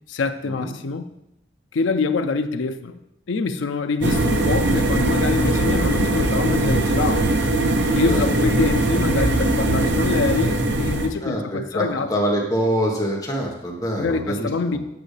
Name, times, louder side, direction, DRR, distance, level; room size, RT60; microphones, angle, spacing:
voice 1, 0.1-1.1 1.7-3.0 3.3-7.3 7.9-12.1 14.0-14.8, left 4 dB, 90° left, 8 dB, 0.5 m, -25 dB
sound 1, 4.0-11.1, right 2 dB, 70° right, 0.7 m, -20 dB
voice 2, 11.2-14.8, equal, 20° left, -2 dB, 1.3 m, -25 dB
8.8 x 6.0 x 3.3 m, 0.85 s
head